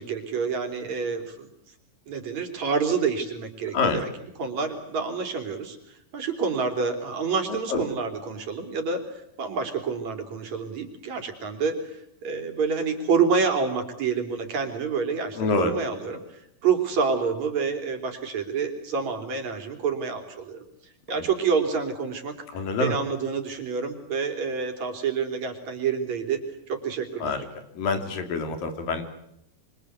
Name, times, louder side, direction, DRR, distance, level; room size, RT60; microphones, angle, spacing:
voice 1, 0.0-1.5 2.1-4.1 4.4-20.6 21.1-22.3 22.8-26.4 26.7-27.4, right 5 dB, 55° right, 5 dB, 4.5 m, -28 dB
voice 2, 7.5-7.8 15.4-15.7 22.5-23.0 27.2-27.5 27.7-29.0, left 3 dB, 90° left, 7 dB, 4.7 m, -26 dB
26.0 x 25.0 x 8.2 m, 0.77 s
omnidirectional pair, 3.9 m